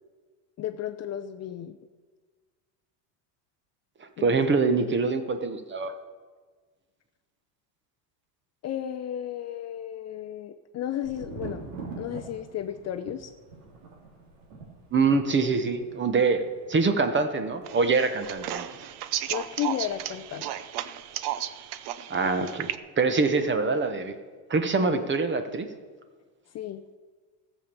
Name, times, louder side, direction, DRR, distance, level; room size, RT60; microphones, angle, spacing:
voice 1, 0.6-1.8 4.2-4.4 8.6-11.7 12.0-13.3 19.3-20.5 26.5-26.8, left 11 dB, 35° left, 9 dB, 0.5 m, -33 dB
voice 2, 4.2-5.9 14.9-16.4 16.7-18.7 22.1-22.7 23.0-24.2 24.5-25.7, right 4 dB, 25° right, 9 dB, 1.1 m, -24 dB
Thunder, 11.0-20.7 20.9-21.7, right 4 dB, 75° right, 2.9 m, -45 dB
sound 1, 17.7-22.8, right 12 dB, 50° right, 0.7 m, -34 dB
14.0 x 7.4 x 6.8 m, 1.5 s
supercardioid pair, 115°, 49 cm